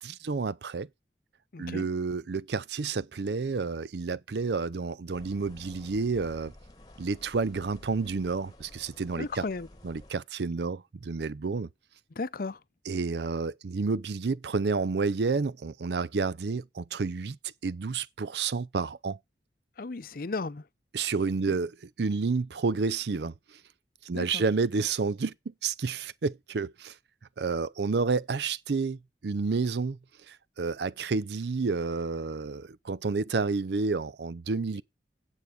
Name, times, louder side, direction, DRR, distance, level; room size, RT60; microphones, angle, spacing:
voice 1, 0.0-0.9 1.6-6.5 7.0-9.4 9.8-11.7 12.9-19.2 20.9-21.7 22.0-23.6 24.0-27.0 27.4-30.0 30.3-34.8, right 4 dB, 70° right, 0.5 m, -30 dB
voice 2, 1.5-1.9 9.2-9.7 12.1-12.6 19.8-20.7 21.5-21.6 24.1-24.4 34.8-34.9, left 3 dB, 55° left, 0.6 m, -35 dB
sound 1, 5.1-10.1, left 1 dB, 20° left, 1.2 m, -52 dB
9.4 x 8.0 x 5.1 m
head